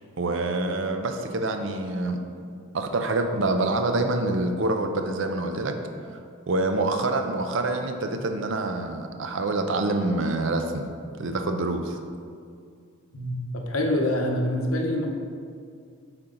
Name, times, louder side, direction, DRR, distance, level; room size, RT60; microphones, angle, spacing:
voice 1, 0.2-2.2 2.7-5.8 6.5-10.8 11.2-12.0, right 2 dB, 60° right, 6 dB, 0.5 m, -26 dB
voice 2, 13.1-15.1, left 1 dB, 80° left, 2 dB, 0.9 m, -26 dB
7.7 x 4.5 x 3.8 m, 2.3 s
head